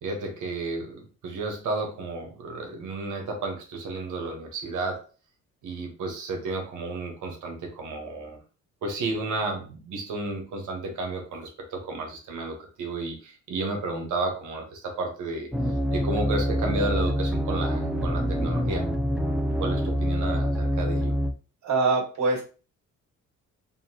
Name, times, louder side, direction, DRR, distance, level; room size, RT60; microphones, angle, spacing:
voice 1, 0.0-5.0 5.6-8.4 8.8-15.5 15.9-18.8 19.6-21.2, right 3 dB, 80° right, 2 dB, 1.4 m, -32 dB
sound 1, 15.5-21.3, equal, ahead, 0.6 m, -26 dB
voice 2, 21.6-22.4, right 3 dB, 65° right, -1 dB, 2.3 m, -23 dB
5.5 x 2.7 x 3.0 m, 0.35 s
cardioid pair, 90°, 30 cm